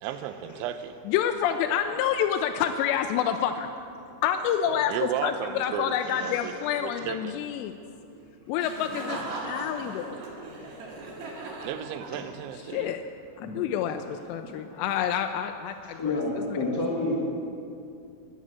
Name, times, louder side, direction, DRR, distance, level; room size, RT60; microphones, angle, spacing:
voice 1, 0.0-1.0 4.7-6.5 6.8-7.4 11.6-12.9, right 10 dB, 85° right, 11 dB, 3.0 m, -34 dB
voice 2, 1.1-3.7 4.2-7.7 8.5-10.2 12.7-13.0 13.4-16.6, left 9 dB, 85° left, 6 dB, 2.5 m, -28 dB
voice 3, 6.2-6.5 7.0-7.1 12.1-12.3 12.7-12.8 13.4-13.5 14.5-14.6 15.9-17.2, left 2 dB, 55° left, -5 dB, 1.1 m, -30 dB
Laughter, 8.6-12.5, right 2 dB, 55° right, 2.4 m, -38 dB
12.5 x 9.7 x 8.2 m, 2.6 s
omnidirectional pair, 5.3 m